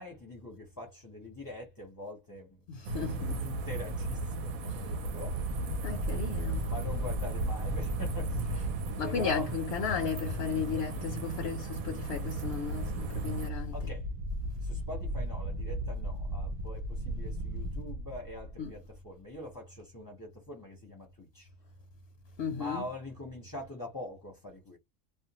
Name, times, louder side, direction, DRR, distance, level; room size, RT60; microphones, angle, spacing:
voice 1, 0.0-5.4 6.7-9.6 13.7-14.1 14.6-21.5 22.5-24.8, left 1 dB, 20° left, 0.6 m, -44 dB
voice 2, 2.7-3.5 4.7-4.9 5.8-6.7 9.0-13.7 18.6-18.7 22.4-22.8, left 6 dB, 60° left, 0.7 m, -35 dB
sound 1, 2.8-13.5, right 2 dB, 85° right, 1.0 m, -36 dB
sound 2, 5.0-8.9 11.7-19.0, right 1 dB, 65° right, 0.5 m, -36 dB
2.4 x 2.1 x 2.8 m
omnidirectional pair, 1.5 m